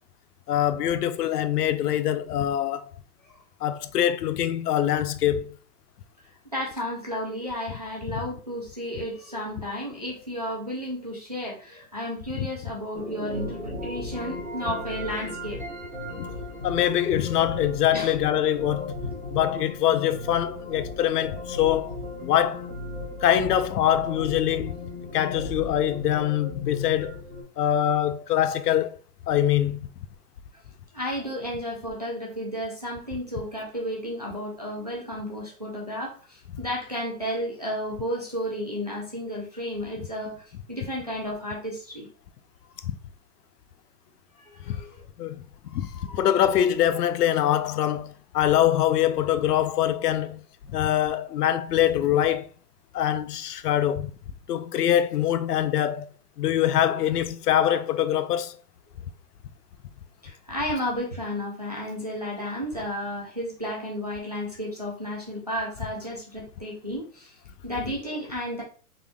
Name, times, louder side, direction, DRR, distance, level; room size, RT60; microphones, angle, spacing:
voice 1, 0.5-2.9 3.6-5.5 16.2-16.3 16.6-19.0 19.3-22.0 22.2-22.7 23.2-24.8 25.1-27.2 27.6-29.0 29.3-29.8 44.7-44.8 45.2-45.4 45.7-50.4 50.7-52.5 52.9-54.1 54.5-56.1 56.4-58.6, left 11 dB, 80° left, 0.6 m, -24 dB
voice 2, 6.5-15.6 17.9-18.1 19.0-19.2 30.9-42.1 44.4-45.0 45.7-46.2 49.7-49.8 60.2-67.3 67.6-68.6, equal, 30° right, 0.4 m, -33 dB
sound 1, 12.9-27.4, left 2 dB, 5° right, 0.8 m, -36 dB
3.7 x 3.4 x 2.3 m
hypercardioid pair, 175°, 47 cm